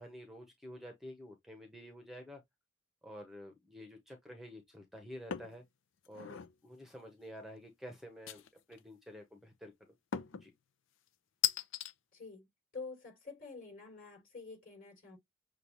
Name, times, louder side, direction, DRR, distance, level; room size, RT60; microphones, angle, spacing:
voice 1, 0.0-2.4 3.0-5.6 6.1-10.0 10.3-10.5, equal, ahead, 0.8 m, -50 dB
sound 1, 5.3-5.6 6.1-6.5 8.3-8.8 10.1-10.5 11.4-11.9, left 10 dB, 75° left, 0.5 m, -36 dB
voice 2, 12.1-12.5 12.7-15.2, left 4 dB, 45° left, 3.8 m, -48 dB
6.7 x 2.4 x 3.0 m
head